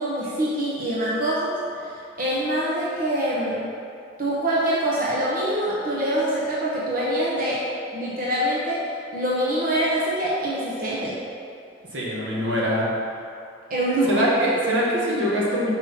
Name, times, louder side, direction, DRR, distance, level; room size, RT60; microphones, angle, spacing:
voice 1, 0.0-3.6 4.2-7.7 7.9-8.8 9.1-11.2 13.7-14.2, right 1 dB, 50° right, -6 dB, 1.1 m, -24 dB
voice 2, 11.9-12.9 14.1-15.7, equal, 85° right, -5 dB, 1.8 m, -23 dB
6.0 x 5.4 x 5.7 m, 2.5 s
head